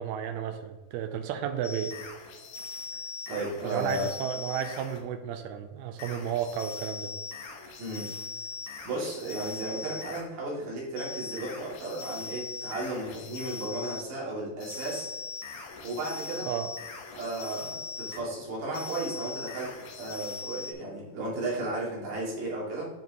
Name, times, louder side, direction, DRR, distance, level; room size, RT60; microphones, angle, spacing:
voice 1, 0.0-1.9 3.6-7.1 16.5-16.7, right 9 dB, 80° right, 8 dB, 2.4 m, -33 dB
sound 1, 1.6-5.0 6.0-10.3 11.0-14.1 14.6-18.2 18.7-20.7, left 4 dB, 65° left, 2.1 m, -40 dB
voice 2, 3.3-4.1 7.8-8.1 8.8-15.1 15.8-16.5 17.1-22.9, right 2 dB, 65° right, -5 dB, 4.2 m, -34 dB
10.5 x 5.9 x 3.0 m, 1.2 s
omnidirectional pair, 4.8 m